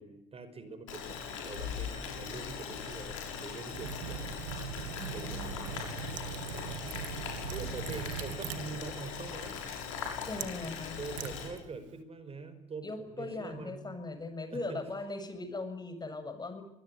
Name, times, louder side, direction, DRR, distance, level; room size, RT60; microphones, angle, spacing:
voice 1, 0.0-4.3 5.1-9.6 11.0-13.8 14.5-14.8, right 4 dB, 40° right, 13 dB, 5.3 m, -44 dB
Boiling, 0.9-11.5, left 7 dB, 85° left, 7.4 m, -40 dB
Liquid, 3.7-12.0, right 10 dB, 85° right, 2.2 m, -42 dB
voice 2, 5.0-5.7 10.2-11.0 12.8-16.6, left 2 dB, 25° left, 9 dB, 7.0 m, -39 dB
25.0 x 21.5 x 9.9 m, 0.78 s
hypercardioid pair, 55°, 16 cm